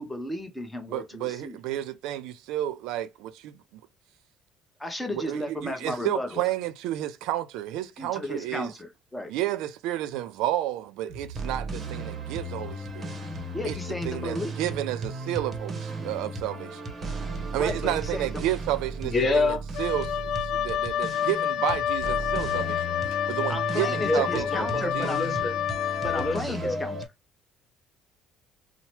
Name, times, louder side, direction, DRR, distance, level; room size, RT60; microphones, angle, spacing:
voice 1, 0.0-1.6 4.8-6.4 8.0-9.3 13.5-14.6 17.5-18.3 23.5-25.2 26.0-27.0, left 1 dB, 5° left, 0.8 m, -34 dB
voice 2, 0.9-3.8 5.1-8.7 9.3-13.1 13.6-13.8 14.1-16.8 17.5-23.0 23.3-25.1, right 13 dB, 85° right, 0.3 m, -31 dB
sound 1, 11.1-27.1, right 2 dB, 35° right, 0.7 m, -35 dB
voice 3, 19.0-19.6 24.0-25.5 26.1-26.8, left 2 dB, 35° left, 1.0 m, -27 dB
Wind instrument woodwind instrument, 19.7-26.4, left 10 dB, 85° left, 0.4 m, -29 dB
2.8 x 2.0 x 3.0 m
cardioid pair, 125°, 0 cm